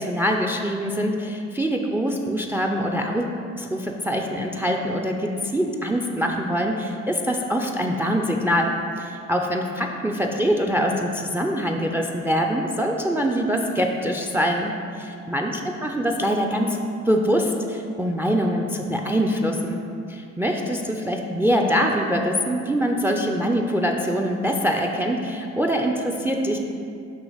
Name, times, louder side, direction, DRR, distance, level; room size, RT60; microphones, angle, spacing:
voice 1, 0.0-3.3 3.6-14.7 15.3-16.8 17.1-19.8 20.1-26.6, equal, 10° right, 3 dB, 0.3 m, -24 dB
6.2 x 2.9 x 5.6 m, 2.5 s
cardioid pair, 90°, 30 cm